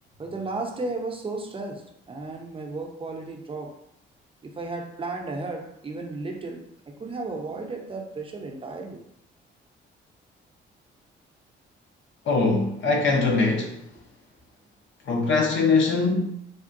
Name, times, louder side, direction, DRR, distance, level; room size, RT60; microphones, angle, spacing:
voice 1, 0.2-3.8 4.4-9.0, right 3 dB, 25° right, 0.6 m, -34 dB
voice 2, 12.3-13.8 15.1-16.3, left 3 dB, 70° left, 0.7 m, -22 dB
3.5 x 2.2 x 2.6 m
cardioid pair, 90°, 20 cm